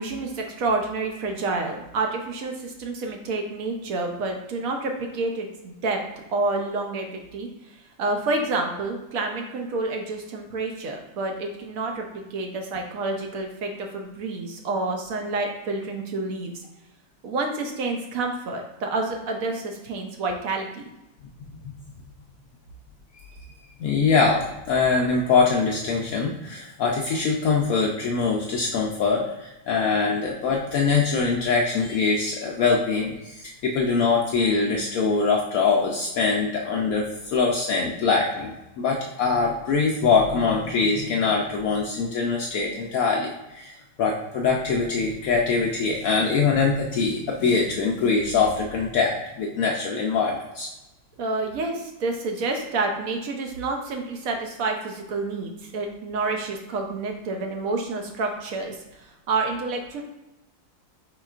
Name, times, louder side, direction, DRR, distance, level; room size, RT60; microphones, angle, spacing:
voice 1, 0.0-6.0 6.3-16.6 17.2-20.8 51.2-60.0, right 3 dB, 75° right, 2 dB, 0.8 m, -29 dB
voice 2, 23.8-38.5 38.8-50.7, left 4 dB, 80° left, -1 dB, 0.7 m, -23 dB
5.0 x 3.8 x 2.4 m, 0.97 s
omnidirectional pair, 2.0 m